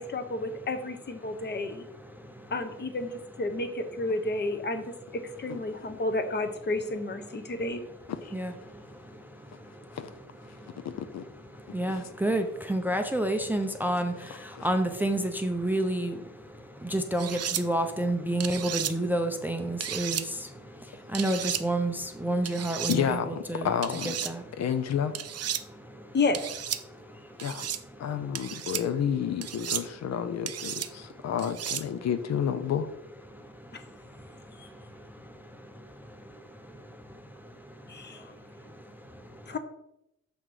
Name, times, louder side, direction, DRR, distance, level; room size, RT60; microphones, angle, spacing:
voice 1, 0.0-1.8 2.5-4.8 5.4-7.8 26.1-26.5 33.7-33.8 34.6-34.7 37.9-38.3 39.5-39.6, left 2 dB, 35° left, 0.9 m, -31 dB
voice 2, 1.2-1.6 2.0-2.5 8.3-10.0 10.5-10.9 11.5-23.7 24.3-24.6 25.6-26.2 26.8-27.5 27.9-28.2 31.0-31.3 33.3-39.6, right 1 dB, 5° right, 0.5 m, -32 dB
voice 3, 10.8-11.2 11.9-12.0 14.5-14.7 22.9-24.2 24.6-25.2 27.4-27.7 28.0-32.9, left 8 dB, 60° left, 0.6 m, -30 dB
sound 1, 17.2-17.6 18.4-18.9 19.8-20.3 21.1-21.6 22.5-23.0 23.8-24.3 25.1-25.6 26.3-26.8 27.4-27.8 28.3-28.8 29.4-29.8 30.5-30.9 31.4-31.8, right 10 dB, 55° right, 0.5 m, -33 dB
6.8 x 5.8 x 4.8 m
wide cardioid pair, 160°, 30 cm